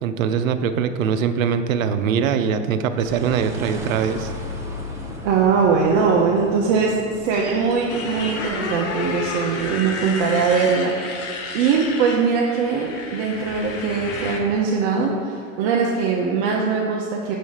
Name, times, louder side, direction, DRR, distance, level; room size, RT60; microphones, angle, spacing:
voice 1, 0.0-4.3, right 7 dB, 85° right, 9 dB, 0.6 m, -22 dB
sound 1, 3.0-10.6, left 1 dB, 5° right, 0.8 m, -37 dB
voice 2, 5.2-10.9 11.5-17.3, right 5 dB, 45° right, -1 dB, 0.7 m, -21 dB
Motorcycle, 7.9-14.4, left 3 dB, 40° left, 0.9 m, -31 dB
7.2 x 3.2 x 5.5 m, 2.3 s
hypercardioid pair, 120°, 39 cm